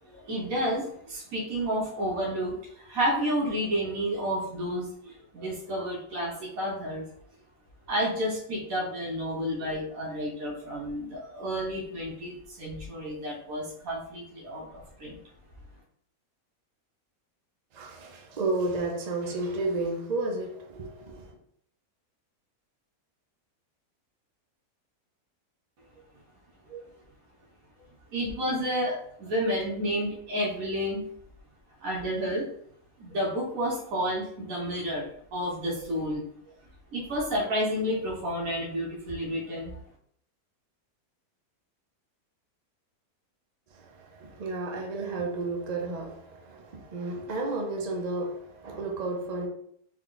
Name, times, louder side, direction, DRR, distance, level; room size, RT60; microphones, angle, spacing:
voice 1, 0.0-7.0 7.9-15.2 26.7-26.8 28.1-31.0 31.8-32.5 33.0-36.2 36.9-39.7, equal, 70° right, 1.4 m, -31 dB
voice 2, 17.7-21.3 43.7-49.5, right 2 dB, 50° right, 0.5 m, -32 dB
3.6 x 2.3 x 3.8 m
omnidirectional pair, 1.6 m